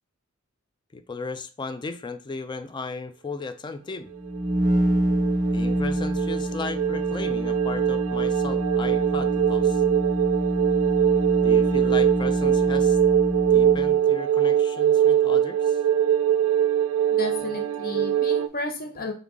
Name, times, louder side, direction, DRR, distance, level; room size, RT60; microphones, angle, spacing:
voice 1, 0.9-4.1 5.5-9.8 11.4-13.0 13.5-15.8, left 3 dB, 20° left, 11 dB, 0.3 m, -35 dB
sound 1, 4.1-14.0, right 1 dB, 35° right, 0.5 m, -26 dB
sound 2, 4.3-18.5, right 10 dB, 85° right, 0.3 m, -23 dB
voice 2, 17.1-19.1, left 2 dB, 45° left, 3 dB, 0.7 m, -33 dB
3.8 x 3.8 x 3.6 m, 0.38 s
head